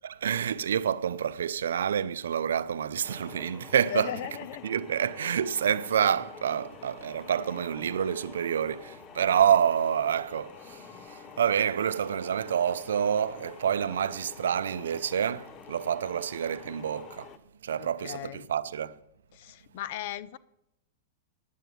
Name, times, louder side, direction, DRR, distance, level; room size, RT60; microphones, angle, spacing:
voice 1, 0.0-4.1 4.6-17.3 17.6-19.0, right 8 dB, 90° right, 0.5 m, -28 dB
sound 1, 3.0-17.4, left 7 dB, 30° left, 0.7 m, -48 dB
voice 2, 3.9-4.6 17.8-18.5 19.3-20.4, left 11 dB, 60° left, 0.5 m, -37 dB
9.4 x 7.9 x 9.2 m
hypercardioid pair, 130°, 0 cm